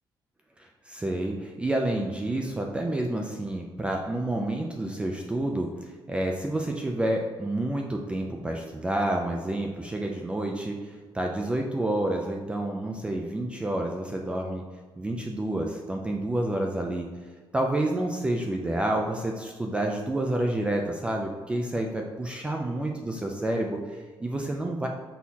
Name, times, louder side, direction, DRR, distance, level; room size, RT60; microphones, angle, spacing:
voice 1, 0.6-14.6 15.0-17.1 17.5-24.9, right 1 dB, 15° right, 1 dB, 0.4 m, -29 dB
6.2 x 5.6 x 2.8 m, 1.5 s
cardioid pair, 165°, 8 cm